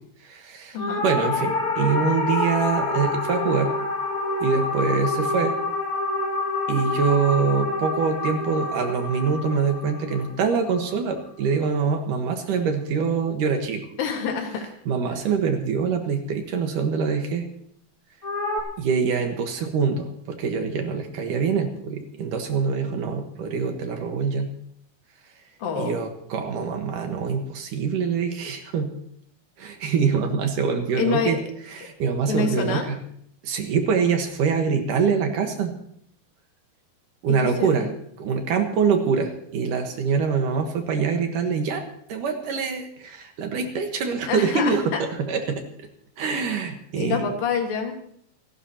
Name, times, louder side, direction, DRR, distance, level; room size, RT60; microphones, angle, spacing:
voice 1, 0.2-0.8 1.0-3.7 4.4-5.6 6.7-13.9 14.9-17.5 18.8-24.5 25.8-28.9 29.6-31.4 31.7-33.0 33.4-35.7 37.2-37.9 38.2-41.8 42.1-45.9 46.2-47.3, right 5 dB, 65° right, 4 dB, 2.7 m, -24 dB
voice 2, 0.7-1.0 14.0-14.7 25.6-25.9 30.9-31.4 32.3-32.9 37.4-37.9 44.3-45.0 46.9-47.9, left 5 dB, 70° left, 4 dB, 3.4 m, -26 dB
Cry-synth-wet, 0.8-11.3 18.2-18.6, left 3 dB, 25° left, 1.8 m, -27 dB
27.5 x 12.0 x 2.9 m, 0.66 s
omnidirectional pair, 4.3 m